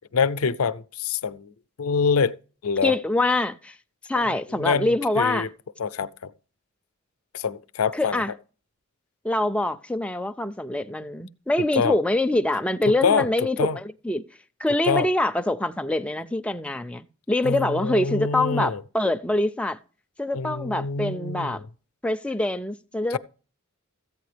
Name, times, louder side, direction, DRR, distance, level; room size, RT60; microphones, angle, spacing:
voice 1, 0.1-1.5 1.8-2.4 2.6-2.9 4.2-5.5 5.8-6.3 7.3-8.2 11.8-12.0 12.9-13.3 13.6-13.8 14.9-15.1 17.4-18.8 20.3-21.6 23.1-23.2, left 5 dB, 90° left, 0.5 m, -25 dB
voice 2, 2.8-3.8 4.1-5.5 7.9-8.3 9.2-14.2 14.6-19.8 20.2-21.6 22.0-23.2, left 1 dB, 5° left, 0.4 m, -25 dB
14.5 x 8.5 x 3.3 m
head